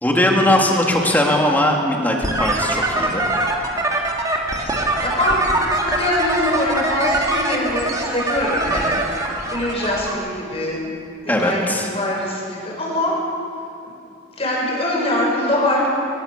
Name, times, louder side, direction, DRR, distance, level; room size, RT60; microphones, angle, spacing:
voice 1, 0.0-3.3 11.3-11.9, left 1 dB, 10° left, 0 dB, 2.8 m, -19 dB
sound 1, 2.2-10.1, right 1 dB, 20° right, 2.4 m, -23 dB
voice 2, 5.0-5.4 5.8-9.0 9.5-10.8 11.2-13.1 14.4-15.9, left 1 dB, 30° left, -2 dB, 6.5 m, -23 dB
22.0 x 20.0 x 7.0 m, 2.7 s
head